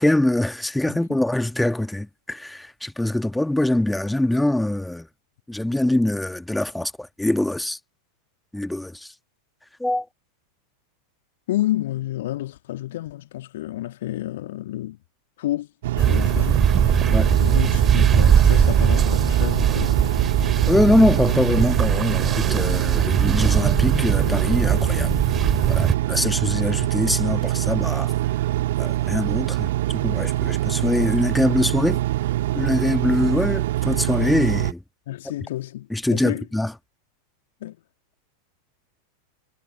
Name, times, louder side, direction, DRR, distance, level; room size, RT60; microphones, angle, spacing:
voice 1, 0.0-5.1 5.5-7.8 8.5-9.1 9.8-10.1 17.1-17.3 20.7-25.2 25.5-28.1 28.8-32.0 32.5-34.8 35.9-36.7, left 1 dB, 5° left, 2.0 m, -23 dB
voice 2, 0.9-1.2 11.5-15.0 15.4-15.7 16.0-16.7 17.4-20.2 35.1-36.5 37.6-37.8, left 14 dB, 55° left, 2.5 m, -30 dB
Engine, 15.8-34.7, right 15 dB, 55° right, 1.9 m, -24 dB
sound 1, 16.0-25.9, right 7 dB, 20° right, 4.2 m, -20 dB
figure-of-eight pair, 90°, 0 cm